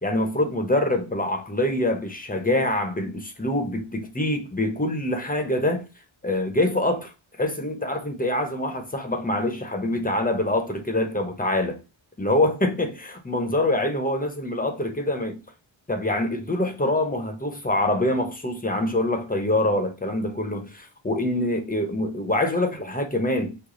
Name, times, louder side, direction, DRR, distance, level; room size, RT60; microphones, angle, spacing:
voice 1, 0.0-5.8 6.2-7.1 7.4-11.8 12.2-15.4 15.9-23.6, left 1 dB, 20° left, 1.0 m, -25 dB
5.0 x 2.3 x 3.9 m
cardioid pair, 75°, 47 cm